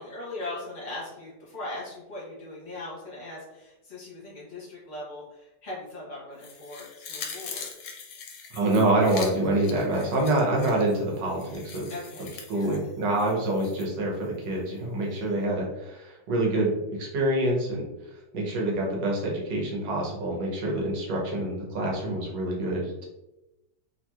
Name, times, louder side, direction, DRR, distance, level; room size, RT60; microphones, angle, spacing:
voice 1, 0.0-7.7 11.9-12.8 15.3-15.6, left 2 dB, 50° left, -7 dB, 1.2 m, -40 dB
sound 1, 6.4-13.9 14.2-14.3, left 5 dB, 80° left, 1.2 m, -42 dB
voice 2, 8.5-11.9 12.5-17.8 18.3-23.1, right 1 dB, 85° right, -2 dB, 1.5 m, -26 dB
3.2 x 2.7 x 2.3 m, 0.96 s
omnidirectional pair, 1.8 m